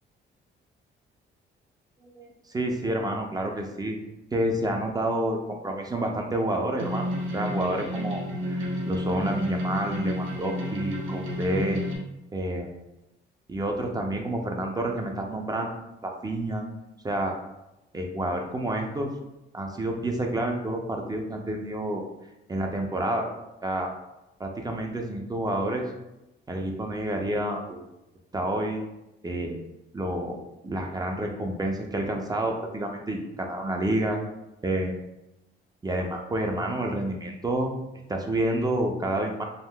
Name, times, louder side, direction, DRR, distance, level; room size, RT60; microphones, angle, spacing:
voice 1, 2.0-4.0 4.3-7.1 7.3-11.8 12.3-12.7 13.5-16.6 17.0-17.4 17.9-19.1 19.5-22.0 22.5-23.3 23.6-23.9 24.4-25.8 26.5-27.9 28.3-28.8 29.2-29.6 29.9-30.4 30.6-34.2 34.6-35.0 35.8-37.7 38.1-39.4, right 1 dB, 20° right, 2 dB, 0.4 m, -29 dB
sound 1, 6.8-12.0, equal, 80° right, 0.7 m, -31 dB
3.6 x 2.5 x 2.2 m, 0.92 s
cardioid pair, 90°, 20 cm